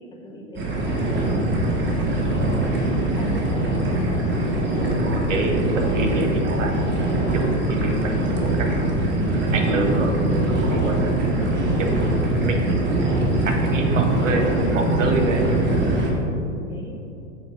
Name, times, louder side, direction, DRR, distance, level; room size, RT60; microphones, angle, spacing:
voice 1, 0.0-3.9 16.7-17.0, right 2 dB, 10° left, -3 dB, 1.4 m, -39 dB
sound 1, 0.5-16.1, right 1 dB, 30° right, 1.5 m, -22 dB
voice 2, 4.9-6.8 7.3-9.1 9.5-11.1 11.8-12.1 12.4-13.0 13.4-15.4, right 3 dB, 80° right, 3 dB, 1.1 m, -26 dB
7.5 x 4.3 x 5.1 m, 2.7 s
hypercardioid pair, 100°, 37 cm